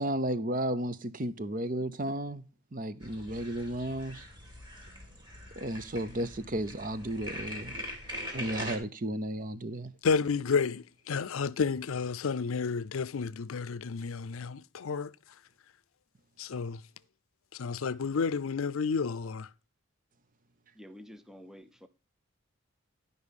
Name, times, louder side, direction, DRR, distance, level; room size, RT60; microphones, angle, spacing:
voice 1, 0.0-2.4 2.7-4.3 5.6-7.8 8.3-9.9, right 1 dB, 40° right, 0.7 m, -33 dB
sound 1, 3.0-8.8, equal, 20° right, 2.4 m, -42 dB
voice 2, 10.0-15.1 16.4-16.8 17.5-19.5, left 5 dB, 85° left, 0.5 m, -31 dB
voice 3, 20.7-21.9, equal, ahead, 0.5 m, -49 dB
11.5 x 5.5 x 5.2 m
head